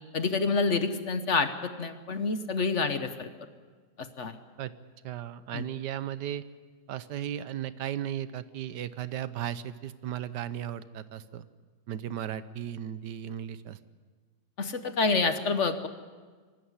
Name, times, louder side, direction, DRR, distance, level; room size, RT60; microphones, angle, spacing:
voice 1, 0.1-3.3 4.0-4.4 5.5-5.7 14.6-15.9, left 4 dB, 50° left, 10 dB, 1.2 m, -28 dB
voice 2, 5.0-6.4 6.9-11.4 11.9-13.8, right 10 dB, 80° right, 14 dB, 1.4 m, -36 dB
24.5 x 13.0 x 9.5 m, 1.5 s
omnidirectional pair, 1.8 m